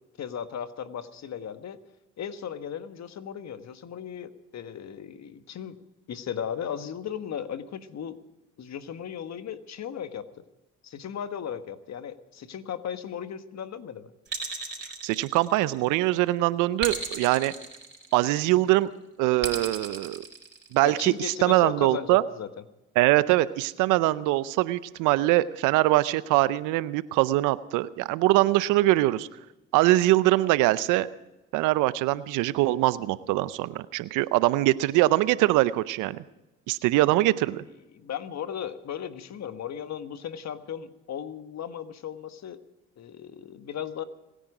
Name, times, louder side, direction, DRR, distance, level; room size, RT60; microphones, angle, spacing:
voice 1, 0.2-1.8 2.2-5.8 6.1-8.2 8.6-10.3 10.8-14.1 20.8-22.6 37.9-42.6 43.0-44.0, left 8 dB, 60° left, 11 dB, 1.4 m, -36 dB
sound 1, 14.3-15.9 16.8-18.5 19.4-21.0, right 4 dB, 35° right, 4.4 m, -35 dB
voice 2, 15.0-17.5 18.1-18.9 19.2-20.2 20.7-22.2 23.0-29.3 29.7-31.1 31.5-36.2 36.7-37.6, right 17 dB, 80° right, 18 dB, 0.7 m, -23 dB
26.0 x 10.0 x 4.9 m, 0.99 s
hypercardioid pair, 50°, 31 cm